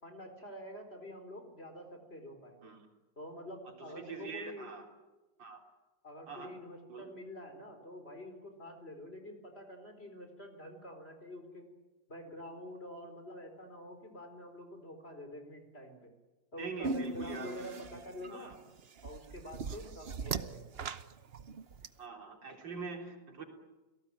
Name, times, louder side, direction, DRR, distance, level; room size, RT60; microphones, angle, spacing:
voice 1, 0.0-2.7 3.2-4.7 6.0-11.7 12.1-16.1 16.5-18.5 19.0-20.7, equal, 30° left, 6 dB, 4.5 m, -47 dB
voice 2, 3.7-4.9 5.4-5.6 6.3-6.5 6.9-7.1 16.6-17.8 18.3-18.6 19.7-19.8 22.0-23.4, right 5 dB, 85° right, 2 dB, 4.5 m, -44 dB
sound 1, 16.8-21.9, right 4 dB, 45° right, 0.9 m, -39 dB
29.5 x 18.5 x 9.1 m, 1.2 s
omnidirectional pair, 2.0 m